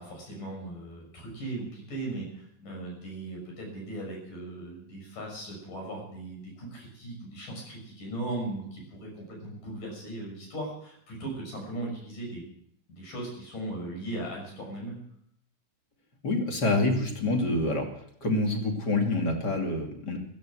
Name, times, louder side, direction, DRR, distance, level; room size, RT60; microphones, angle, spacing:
voice 1, 0.0-12.5 12.9-15.0, right 1 dB, 80° left, 0 dB, 7.8 m, -38 dB
voice 2, 16.2-17.8 18.2-20.2, left 2 dB, 35° left, 2 dB, 3.0 m, -26 dB
16.0 x 14.0 x 6.4 m, 0.69 s
omnidirectional pair, 3.7 m